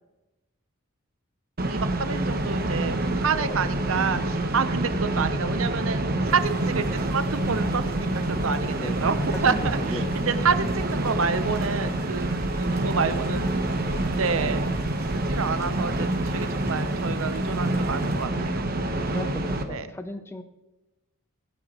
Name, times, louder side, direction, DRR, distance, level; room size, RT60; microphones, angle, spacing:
vent exhaust ext, 1.6-19.6, right 1 dB, 45° right, 1.0 m, -27 dB
voice 1, 1.7-9.2 9.4-13.5 14.2-14.6 15.1-18.6 19.7-19.9, right 5 dB, 85° right, 12 dB, 0.8 m, -28 dB
voice 2, 3.3-3.6 7.6-7.8 8.7-9.1 9.4-10.5 18.6-20.4, left 1 dB, 10° left, 8 dB, 0.5 m, -38 dB
sound 1, 6.2-18.2, right 1 dB, 15° right, 2.3 m, -49 dB
19.5 x 9.4 x 3.0 m, 1.0 s
head